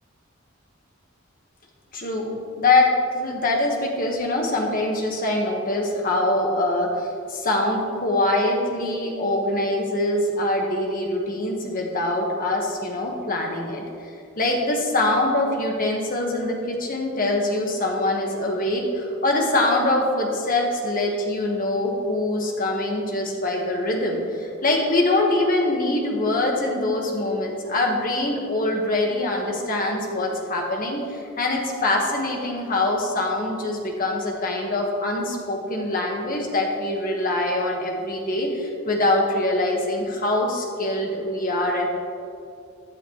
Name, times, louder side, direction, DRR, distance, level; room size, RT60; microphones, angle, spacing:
voice 1, 1.9-41.9, left 2 dB, 45° left, 0 dB, 1.7 m, -24 dB
14.5 x 10.5 x 3.3 m, 2.4 s
head